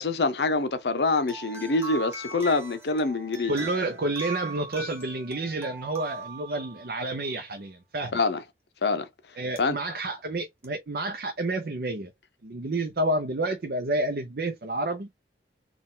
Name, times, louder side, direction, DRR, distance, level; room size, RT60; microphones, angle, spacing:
voice 1, 0.0-3.5 8.1-8.4 8.8-9.1 9.6-9.8, left 3 dB, 70° left, 0.6 m, -25 dB
sound 1, 1.2-7.2 9.6-9.7 10.6-10.7, right 3 dB, 15° right, 1.0 m, -40 dB
voice 2, 3.5-8.2 9.4-12.1 12.4-15.1, right 2 dB, 55° right, 0.6 m, -29 dB
4.2 x 2.4 x 3.7 m
head